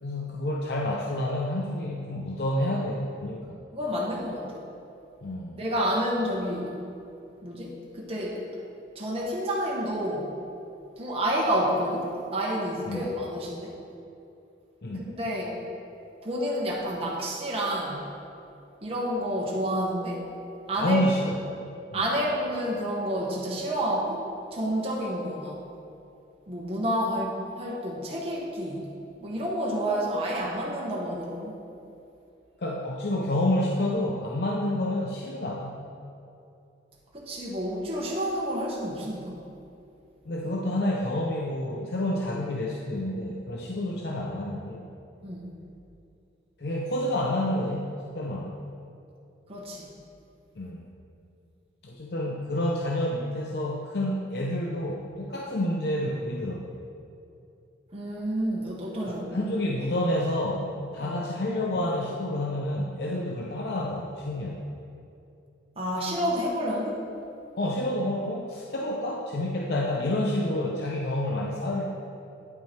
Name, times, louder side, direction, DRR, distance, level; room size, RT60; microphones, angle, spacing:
voice 1, 0.0-3.6 5.2-5.6 12.9-13.0 14.8-15.0 20.8-21.4 21.9-22.0 32.6-35.8 40.3-44.8 46.6-48.6 50.6-50.8 51.8-56.7 59.1-64.6 67.6-71.8, left 1 dB, 60° left, -2 dB, 0.6 m, -29 dB
voice 2, 3.7-4.5 5.6-6.8 7.4-8.4 8.9-10.4 11.0-13.8 14.9-15.6 16.2-18.1 18.8-20.3 20.7-21.3 21.9-25.6 26.5-28.9 29.2-31.6 37.1-39.4 43.7-43.9 45.2-45.5 49.5-49.9 57.9-59.4 61.0-61.2 65.8-67.0, equal, 30° right, -4 dB, 1.1 m, -29 dB
9.5 x 5.7 x 4.4 m, 2.7 s
head